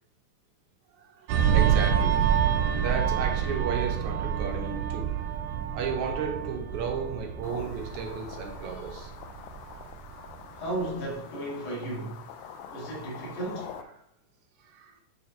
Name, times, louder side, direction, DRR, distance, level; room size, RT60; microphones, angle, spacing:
voice 1, 0.9-5.3 5.7-9.1 12.4-12.8 14.6-15.0, right 5 dB, 65° right, 1.5 m, -34 dB
sound 1, 1.3-10.3 10.7-10.9, right 8 dB, 80° right, 1.9 m, -27 dB
sound 2, 7.4-13.8, left 8 dB, 90° left, 2.1 m, -45 dB
voice 2, 10.5-12.2 12.7-13.8, right 1 dB, 65° left, 3.0 m, -34 dB
8.8 x 3.3 x 3.2 m
omnidirectional pair, 3.4 m